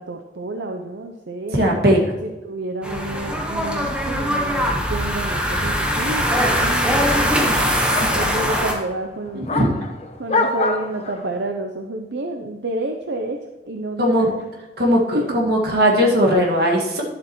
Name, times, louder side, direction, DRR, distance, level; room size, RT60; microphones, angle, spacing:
voice 1, 0.0-1.6 2.2-7.7 8.1-9.5 10.2-13.4 13.7-14.3 15.1-15.4, right 2 dB, 80° right, 4 dB, 0.7 m, -29 dB
voice 2, 1.5-2.1 8.0-8.1 9.3-9.7 14.0-14.3 14.8-17.0, equal, 60° right, -1 dB, 1.9 m, -18 dB
sound 1, 2.8-8.7, equal, 5° right, 1.1 m, -21 dB
sound 2, 5.0-11.5, left 3 dB, 35° left, 0.7 m, -29 dB
11.0 x 7.4 x 3.1 m, 1.1 s
head